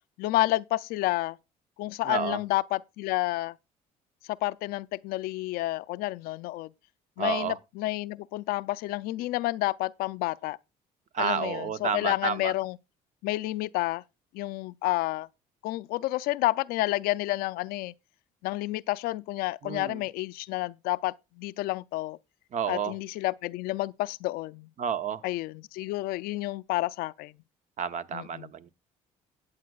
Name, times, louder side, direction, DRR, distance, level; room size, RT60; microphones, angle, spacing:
voice 1, 0.2-1.4 1.8-3.6 4.3-6.7 7.2-10.6 11.2-12.8 13.2-14.0 14.3-15.3 15.6-17.9 18.4-22.2 22.7-24.7 25.2-27.3 28.1-28.5, left 18 dB, 80° left, 0.4 m, -30 dB
voice 2, 2.0-2.4 7.2-7.6 11.1-12.5 19.6-20.0 22.5-22.9 24.8-25.2 27.8-28.7, right 7 dB, 50° right, 0.9 m, -30 dB
19.5 x 8.0 x 2.3 m
supercardioid pair, 80°, 15 cm